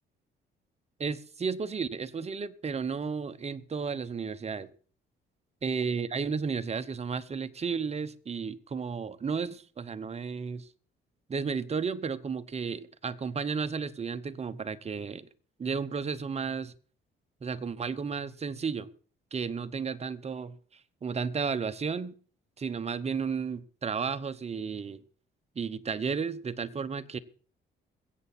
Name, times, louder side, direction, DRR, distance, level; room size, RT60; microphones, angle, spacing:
voice 1, 1.0-4.7 5.6-10.7 11.3-15.3 15.6-16.7 17.4-18.9 19.3-20.6 21.0-22.1 22.6-25.0 25.6-27.2, right 5 dB, 30° right, 11 dB, 1.0 m, -33 dB
22.0 x 8.3 x 4.2 m, 0.43 s
cardioid pair, 90°, 20 cm